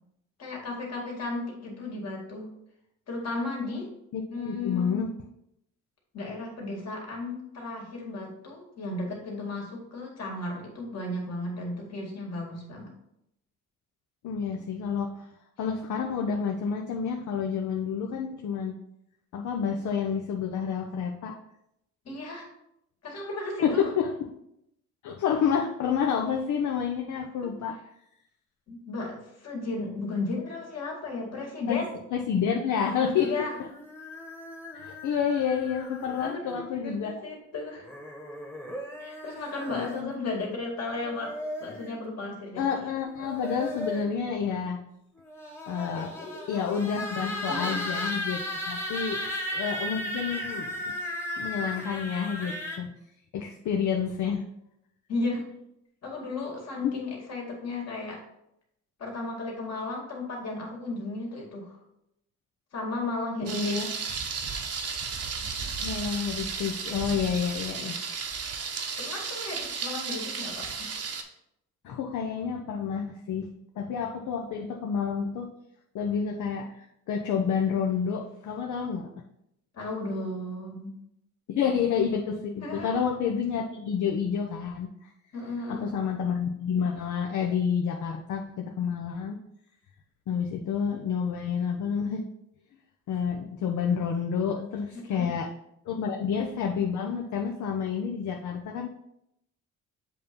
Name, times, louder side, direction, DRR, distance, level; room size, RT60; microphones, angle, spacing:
voice 1, 0.4-2.5 3.1-3.9 4.3-5.1 6.1-12.9 22.0-22.5 23.0-23.9 28.7-31.9 33.3-33.5 36.2-37.9 39.0-41.3 41.6-42.6 45.9-46.5 47.5-47.9 49.0-49.2 55.1-55.5 56.0-58.2 59.0-61.8 62.7-63.8 69.0-70.9 79.7-81.0 82.6-83.0 85.3-85.9 94.9-95.3 95.9-96.1, left 2 dB, 55° left, -1 dB, 2.2 m, -34 dB
voice 2, 4.1-5.1 14.2-15.2 15.6-18.8 19.3-21.4 23.6-24.3 25.0-27.8 31.7-31.8 32.1-33.5 34.7-37.1 39.7-40.1 42.6-44.8 45.7-46.1 46.5-49.2 49.5-50.9 51.4-52.9 53.3-54.4 56.8-56.9 63.4-63.9 65.8-68.0 71.8-73.5 73.8-75.5 75.9-76.7 77.1-79.1 81.5-85.1 85.7-89.4 90.3-92.3 93.1-95.5 95.9-98.9, left 7 dB, 70° left, 1 dB, 0.7 m, -29 dB
sound 1, 32.9-36.6 37.8-40.1 41.0-42.0 43.0-44.2 45.2-52.8, left 1 dB, 10° left, 1.2 m, -36 dB
Thunder, 63.5-71.2, right 5 dB, 50° right, 0.9 m, -34 dB
7.5 x 2.9 x 5.2 m, 0.80 s
cardioid pair, 85°, 31 cm